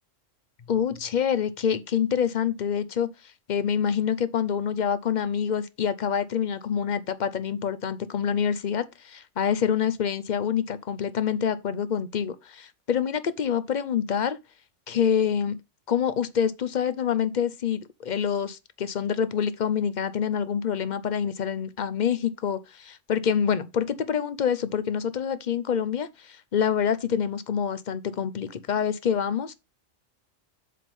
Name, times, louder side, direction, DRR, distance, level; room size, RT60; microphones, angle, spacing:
voice 1, 0.7-3.1 3.5-14.4 14.9-15.6 15.9-29.5, left 8 dB, 45° left, 0.7 m, -26 dB
7.6 x 3.7 x 5.3 m
omnidirectional pair, 1.3 m